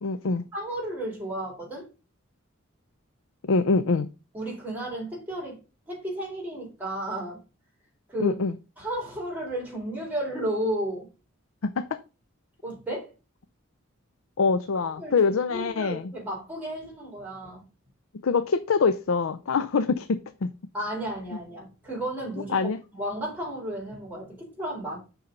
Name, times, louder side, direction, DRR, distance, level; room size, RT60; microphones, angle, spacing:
voice 1, 0.0-0.4 3.4-4.1 8.2-8.6 11.6-12.0 14.4-16.1 18.2-20.5 22.5-22.8, left 4 dB, 75° left, 0.5 m, -24 dB
voice 2, 0.5-1.9 4.3-5.6 5.9-7.4 8.1-8.4 8.8-11.1 12.6-13.1 14.8-15.2 15.5-17.6 20.7-22.6 22.9-25.0, right 1 dB, 10° right, 4.4 m, -33 dB
6.7 x 5.7 x 5.2 m
head